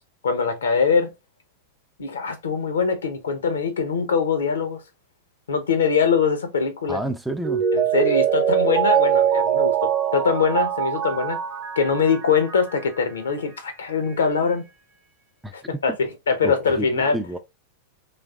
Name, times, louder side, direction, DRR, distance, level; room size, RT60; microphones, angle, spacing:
voice 1, 0.2-1.1 2.0-4.8 5.5-7.0 7.7-11.4 11.8-14.6 15.5-17.2, left 5 dB, 70° left, 0.8 m, -22 dB
voice 2, 6.9-7.7 15.4-15.5 16.4-17.4, right 1 dB, 5° right, 0.5 m, -30 dB
Mallet percussion, 7.4-13.0 13.3-13.4, right 9 dB, 35° right, 0.9 m, -23 dB
4.2 x 3.2 x 2.4 m
figure-of-eight pair, 90°, 0 cm